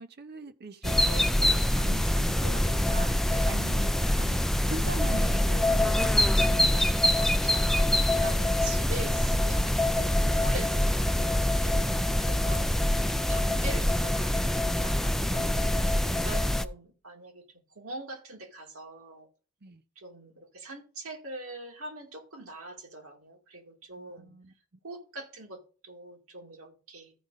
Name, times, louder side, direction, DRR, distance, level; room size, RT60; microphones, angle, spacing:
voice 1, 0.0-6.9 11.7-12.6 13.5-13.6 15.3-16.0 19.6-19.8 24.0-24.5, right 2 dB, 45° right, 0.7 m, -42 dB
sound 1, 0.8-16.6, left 1 dB, ahead, 0.4 m, -25 dB
voice 2, 7.2-15.4 16.0-19.3 20.0-24.3 24.8-27.2, right 2 dB, 70° right, 2.2 m, -43 dB
14.5 x 5.0 x 4.0 m
head